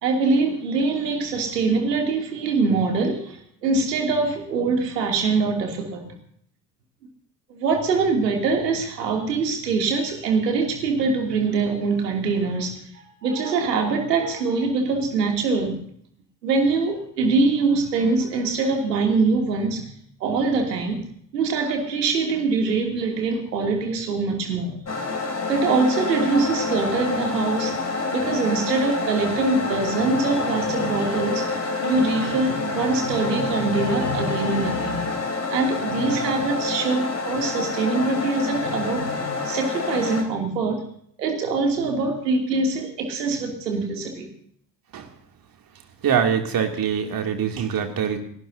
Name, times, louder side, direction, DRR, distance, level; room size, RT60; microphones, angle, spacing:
voice 1, 0.0-6.1 7.5-15.8 16.4-19.8 20.2-21.0 21.3-24.8 25.5-27.8 28.1-31.6 31.8-35.0 35.5-40.8 41.2-44.3, right 4 dB, 75° right, 2 dB, 2.9 m, -23 dB
sound 1, 24.9-40.2, left 3 dB, 30° left, 3.8 m, -27 dB
voice 2, 46.0-48.2, right 8 dB, 45° right, 4 dB, 2.8 m, -23 dB
29.0 x 12.0 x 2.8 m, 0.65 s
figure-of-eight pair, 55°, 49 cm